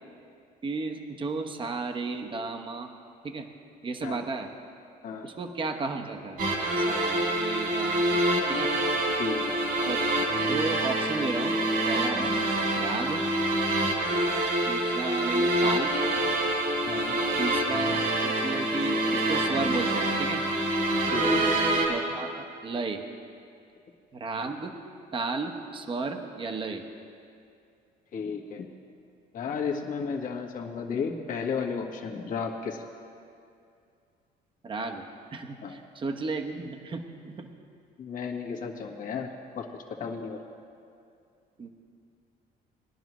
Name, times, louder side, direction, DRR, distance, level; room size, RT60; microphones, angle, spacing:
voice 1, 0.6-2.9 3.2-3.5 3.8-4.5 5.2-6.4 6.8-8.7 9.9-10.1 10.5-11.5 11.8-12.3 12.7-13.2 14.6-15.9 17.4-20.4 21.2-23.0 24.1-24.7 25.1-26.8 34.6-35.0 35.3-37.5 41.6-41.7, right 3 dB, 30° right, 4 dB, 1.0 m, -33 dB
sound 1, 6.4-21.9, right 1 dB, 65° right, 2.9 m, -26 dB
voice 2, 9.2-9.6 16.9-17.2 21.1-21.5 28.1-28.7 29.3-32.8 35.6-35.8 38.0-39.3 39.5-39.7 40.0-40.4, left 5 dB, 55° left, 1 dB, 1.5 m, -33 dB
20.5 x 11.0 x 3.1 m, 2.4 s
cardioid pair, 110°, 17 cm